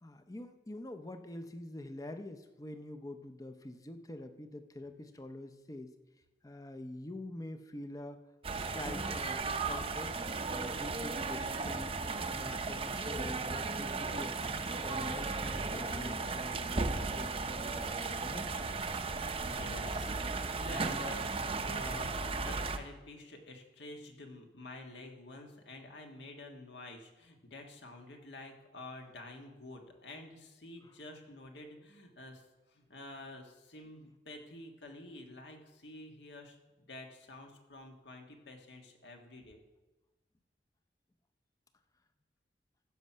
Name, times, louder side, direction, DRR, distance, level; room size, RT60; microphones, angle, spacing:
voice 1, 0.0-5.9 6.4-8.2 8.5-11.9 12.3-14.4 14.8-18.6 30.8-30.9, left 1 dB, 20° left, 9 dB, 0.6 m, -46 dB
sound 1, 8.4-22.8, right 3 dB, 30° right, 0.6 m, -36 dB
voice 2, 19.4-39.6, left 2 dB, 70° left, 3 dB, 1.6 m, -49 dB
15.0 x 6.1 x 5.6 m, 1.1 s
head